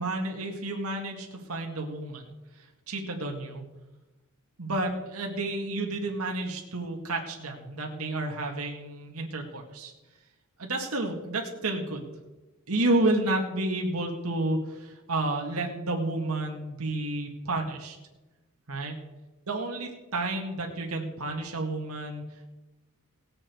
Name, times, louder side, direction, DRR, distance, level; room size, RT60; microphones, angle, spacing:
voice 1, 0.0-2.3 2.6-3.6 4.6-9.9 10.6-12.2 12.7-18.0 18.7-18.9 19.5-22.5, right 2 dB, 80° right, 1 dB, 1.9 m, -31 dB
19.0 x 7.6 x 4.6 m, 1.1 s
head